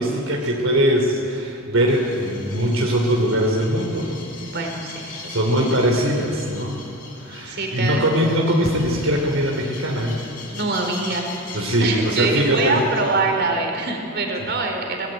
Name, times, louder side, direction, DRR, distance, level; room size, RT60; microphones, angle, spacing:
voice 1, 0.0-4.1 5.3-6.8 7.2-10.2 11.5-12.8 14.4-14.5, equal, 70° right, 0 dB, 3.4 m, -21 dB
sound 1, 1.9-13.2, left 3 dB, 40° left, 4.8 m, -38 dB
voice 2, 4.4-5.4 7.4-8.1 10.5-11.3 11.8-15.1, right 3 dB, 50° right, 3 dB, 4.2 m, -24 dB
25.5 x 19.5 x 9.1 m, 2.6 s
head